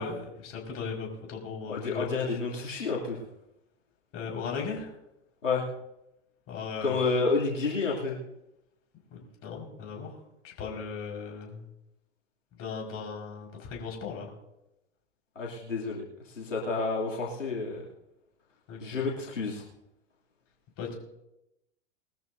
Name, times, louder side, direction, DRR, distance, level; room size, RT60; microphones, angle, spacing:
voice 1, 0.0-2.4 4.1-4.9 6.5-7.0 9.1-10.2 10.4-11.6 12.6-14.3 18.7-19.0 20.8-20.9, left 5 dB, 40° left, 0 dB, 5.2 m, -37 dB
voice 2, 1.7-3.2 5.4-5.7 6.8-8.2 15.3-17.8 18.8-19.6, left 4 dB, 85° left, -4 dB, 3.0 m, -30 dB
21.5 x 13.5 x 2.7 m, 0.88 s
hypercardioid pair, 95°, 36 cm